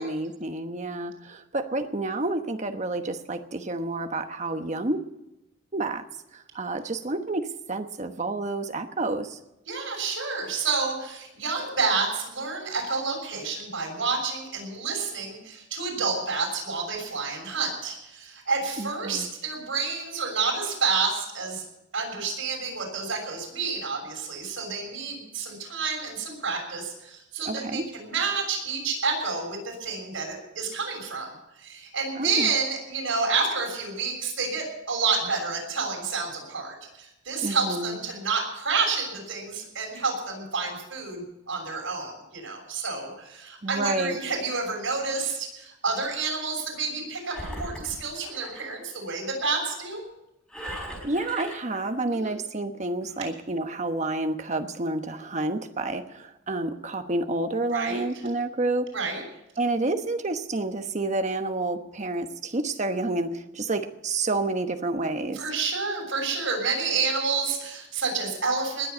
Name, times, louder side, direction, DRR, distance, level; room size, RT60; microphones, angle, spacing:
voice 1, 0.0-5.0 5.7-6.0 6.3-9.4 18.8-19.3 27.4-27.8 32.2-32.5 37.4-38.0 43.6-44.2 50.7-58.9 59.6-65.4, right 2 dB, 35° right, 7 dB, 1.1 m, -29 dB
voice 2, 9.7-21.6 21.9-31.3 31.6-50.0 52.1-52.3 57.7-58.0 58.9-59.2 65.3-68.9, right 4 dB, 90° right, 0 dB, 6.6 m, -29 dB
Engine, 47.2-48.8 50.5-51.8, equal, 5° left, 5.0 m, -38 dB
20.0 x 7.8 x 8.5 m, 0.90 s
head